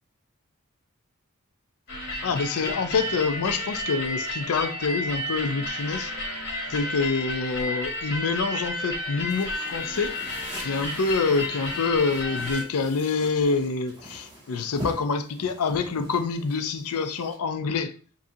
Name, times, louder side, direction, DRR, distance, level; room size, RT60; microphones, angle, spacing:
sound 1, 1.9-12.6, left 1 dB, 45° left, 1.6 m, -32 dB
voice 1, 2.2-6.4 6.7-10.4 10.6-17.9, left 4 dB, 80° left, 0.5 m, -26 dB
sound 2, 9.3-17.4, equal, 20° right, 2.0 m, -43 dB
7.4 x 2.7 x 2.7 m
head